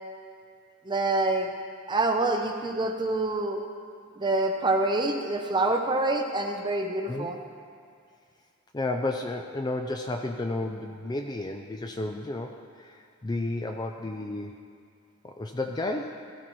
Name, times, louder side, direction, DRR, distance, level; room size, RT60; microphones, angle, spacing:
voice 1, 0.8-1.5 1.9-3.6 4.2-7.4, right 2 dB, 20° right, 4 dB, 0.7 m, -26 dB
voice 2, 8.7-14.6 15.2-16.2, left 2 dB, 20° left, 4 dB, 0.4 m, -32 dB
16.0 x 13.0 x 3.1 m, 2.2 s
head